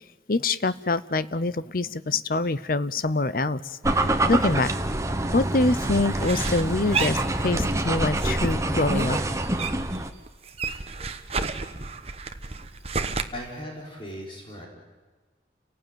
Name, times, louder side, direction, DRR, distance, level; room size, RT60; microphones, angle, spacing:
voice 1, 0.3-3.6 3.9-4.0 4.3-4.7 5.3-9.2, left 2 dB, 55° left, 16 dB, 0.7 m, -25 dB
sound 1, 3.8-10.1, right 1 dB, 15° right, 1.1 m, -26 dB
sound 2, 5.8-7.9 8.2-10.0 10.3-13.2, right 4 dB, 35° right, 1.1 m, -31 dB
voice 2, 13.3-14.7, equal, 30° left, -2 dB, 4.8 m, -38 dB
30.0 x 18.0 x 9.2 m, 1.3 s
head